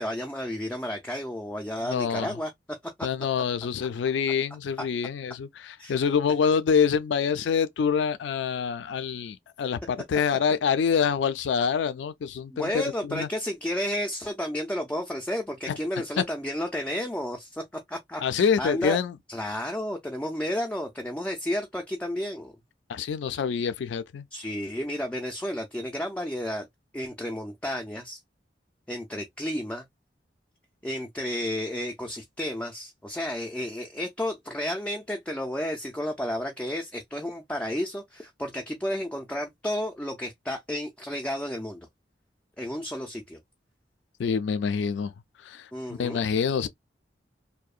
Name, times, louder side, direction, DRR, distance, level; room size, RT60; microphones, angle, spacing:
voice 1, 0.0-2.5 5.8-6.0 12.5-19.0 19.3-22.5 24.3-26.7 26.9-28.2 28.9-29.8 30.8-41.9 42.6-43.4 45.7-46.2, left 1 dB, 10° left, 0.3 m, -32 dB
voice 2, 1.9-2.4 3.0-13.3 15.7-15.8 16.2-16.3 18.2-19.2 22.9-24.3 44.2-45.1 45.4-46.7, left 6 dB, 90° left, 0.3 m, -26 dB
2.7 x 2.1 x 2.3 m
head